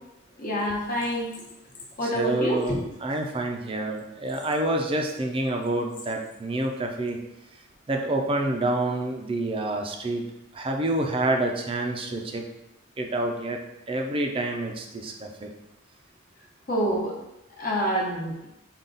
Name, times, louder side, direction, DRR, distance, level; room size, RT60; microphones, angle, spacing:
voice 1, 0.4-1.3 2.0-2.8 16.7-17.2 17.6-18.3, equal, 45° left, -3 dB, 1.0 m, -26 dB
voice 2, 2.0-2.7 3.0-7.2 7.9-10.2 10.5-12.4 13.0-13.6 13.9-15.5, right 2 dB, 25° right, 2 dB, 0.5 m, -27 dB
5.4 x 2.4 x 3.9 m, 0.90 s
head